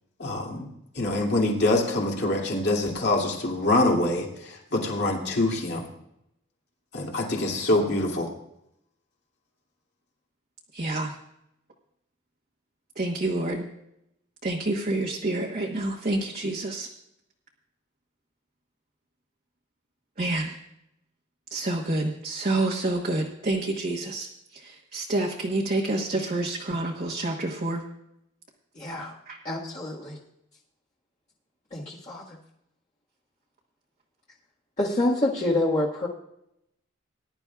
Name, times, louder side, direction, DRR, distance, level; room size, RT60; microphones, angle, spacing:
voice 1, 0.2-0.7 0.9-5.9 6.9-8.3, left 2 dB, 55° left, 0 dB, 2.6 m, -25 dB
voice 2, 10.7-11.1 12.9-13.6 14.4-16.9 20.2-20.5 21.5-27.8 29.3-29.4, right 2 dB, 40° right, -1 dB, 1.3 m, -28 dB
voice 3, 28.7-29.1 29.4-30.2 31.7-32.4 34.8-36.1, left 1 dB, 35° left, -6 dB, 1.7 m, -27 dB
21.0 x 11.0 x 2.4 m, 0.80 s
head